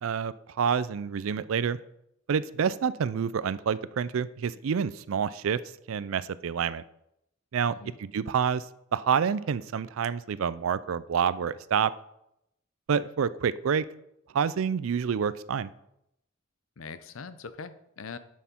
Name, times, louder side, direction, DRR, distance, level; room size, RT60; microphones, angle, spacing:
voice 1, 0.0-1.8 2.3-5.6 5.9-6.8 7.5-8.7 8.9-11.9 12.9-13.9 14.3-15.7, right 7 dB, 75° right, 17 dB, 0.4 m, -28 dB
voice 2, 16.8-18.2, left 5 dB, 75° left, 13 dB, 0.6 m, -42 dB
9.1 x 6.4 x 4.4 m, 0.80 s
head